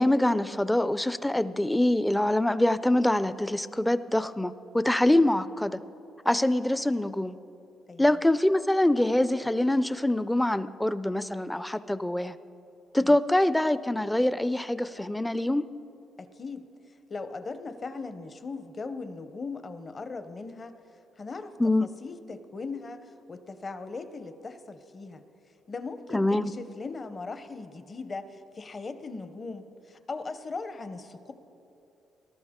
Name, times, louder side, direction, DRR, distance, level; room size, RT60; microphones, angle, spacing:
voice 1, 0.0-5.8 6.3-7.4 8.0-12.3 12.9-15.7 21.6-21.9 26.1-26.5, left 1 dB, 5° left, 15 dB, 0.4 m, -24 dB
voice 2, 16.2-16.7 17.1-20.8 21.2-25.2 25.7-31.3, left 4 dB, 35° left, 11 dB, 0.7 m, -39 dB
19.0 x 12.0 x 3.6 m, 2.9 s
cardioid pair, 90°, 0 cm